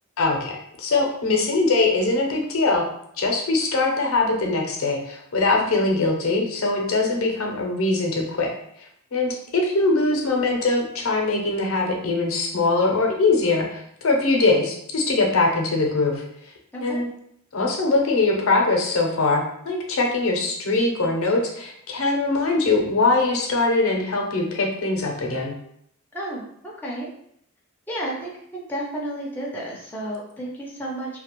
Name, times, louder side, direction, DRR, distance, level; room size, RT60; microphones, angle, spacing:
voice 1, 0.2-2.9 3.2-8.5 9.1-16.2 16.8-17.1 17.5-25.5, left 3 dB, 75° left, 1 dB, 0.5 m, -22 dB
voice 2, 26.1-27.1 27.9-31.2, right 1 dB, 10° left, -4 dB, 0.4 m, -32 dB
2.3 x 2.1 x 2.9 m, 0.71 s
head